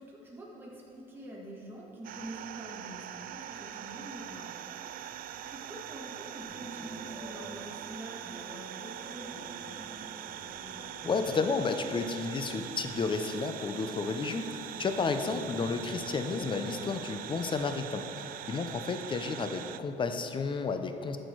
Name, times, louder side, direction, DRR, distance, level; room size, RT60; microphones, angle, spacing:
voice 1, 0.0-5.2 5.5-10.0, right 1 dB, 10° right, -5 dB, 1.8 m, -46 dB
sound 1, 2.0-19.8, right 11 dB, 55° right, 0.4 m, -42 dB
sound 2, 6.4-17.6, left 1 dB, 10° left, 1.7 m, -50 dB
voice 2, 11.0-14.5 14.8-18.1 18.5-21.2, left 4 dB, 30° left, 8 dB, 0.7 m, -32 dB
10.5 x 6.7 x 4.6 m, 3.0 s
cardioid pair, 110°, 17 cm